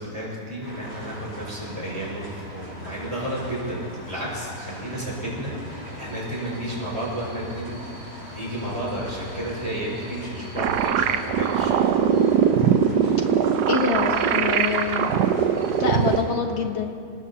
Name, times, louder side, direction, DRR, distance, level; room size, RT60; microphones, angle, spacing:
voice 1, 0.0-12.2, right 1 dB, 20° right, -5 dB, 5.2 m, -32 dB
sound 1, 0.6-16.2, left 1 dB, 55° right, 5.9 m, -39 dB
sound 2, 10.6-16.2, right 8 dB, 85° right, 1.3 m, -21 dB
voice 2, 13.7-15.2 15.8-16.9, left 5 dB, 45° left, 4 dB, 1.3 m, -25 dB
25.5 x 19.0 x 2.8 m, 2.3 s
omnidirectional pair, 1.7 m